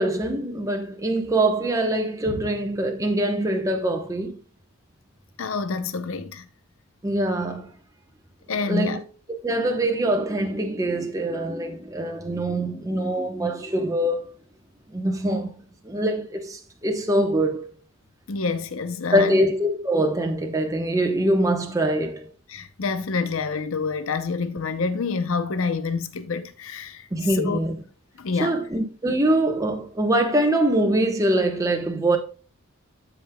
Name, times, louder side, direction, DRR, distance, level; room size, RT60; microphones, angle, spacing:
voice 1, 0.0-4.4 7.0-7.7 8.7-9.0 9.4-14.3 14.9-15.5 15.8-17.7 19.1-22.3 27.1-27.8 28.4-32.2, right 1 dB, 15° right, 0.8 m, -23 dB
voice 2, 5.4-6.4 8.5-9.0 18.3-19.4 22.5-27.1 27.4-27.6 28.2-28.6, left 4 dB, 65° left, 0.6 m, -27 dB
14.0 x 5.1 x 2.2 m
head